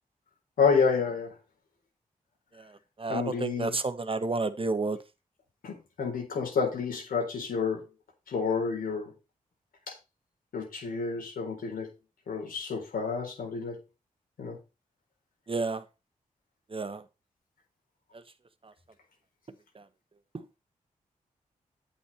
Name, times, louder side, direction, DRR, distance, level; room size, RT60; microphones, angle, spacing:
voice 1, 0.6-1.3 3.1-3.8 5.6-7.8 8.3-9.1 9.9-10.0 10.5-11.9 12.3-13.8 14.4-14.6, left 5 dB, 90° left, 4.2 m, -29 dB
voice 2, 3.0-5.0 15.5-15.8 16.7-17.0, right 3 dB, 40° right, 1.3 m, -30 dB
8.7 x 8.5 x 4.3 m
cardioid pair, 45°, 14 cm